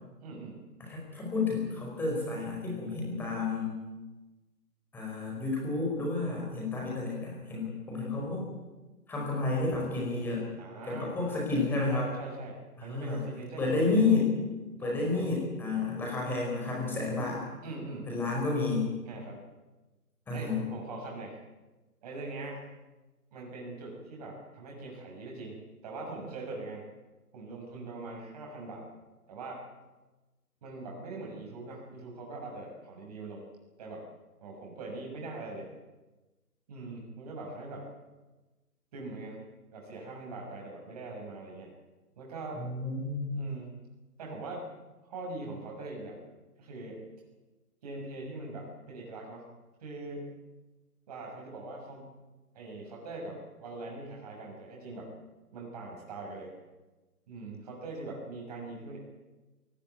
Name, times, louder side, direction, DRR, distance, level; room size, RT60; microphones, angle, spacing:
voice 1, 0.2-0.6 10.6-11.3 11.6-14.0 14.8-15.3 17.6-18.1 19.1-19.4 20.3-21.4 22.0-22.6 23.3-25.6 25.8-26.8 27.3-28.8 29.3-29.6 30.6-33.5 33.8-34.0 34.4-35.7 36.7-37.9 38.9-39.4 39.7-41.7 42.2-42.6 43.3-43.7 44.2-44.7 45.1-46.2 46.6-47.0 47.8-49.4 49.8-50.3 51.1-52.1 52.5-55.1 55.5-56.5 57.3-59.0, right 2 dB, 25° right, -1 dB, 6.6 m, -42 dB
voice 2, 0.8-3.7 4.9-8.4 9.1-10.4 10.9-12.1 12.8-13.2 13.6-14.3 14.8-17.4 18.1-18.9 20.3-20.6 42.5-43.4, left 3 dB, 5° left, -2 dB, 4.9 m, -30 dB
20.0 x 20.0 x 9.4 m, 1.2 s
figure-of-eight pair, 155°, 47 cm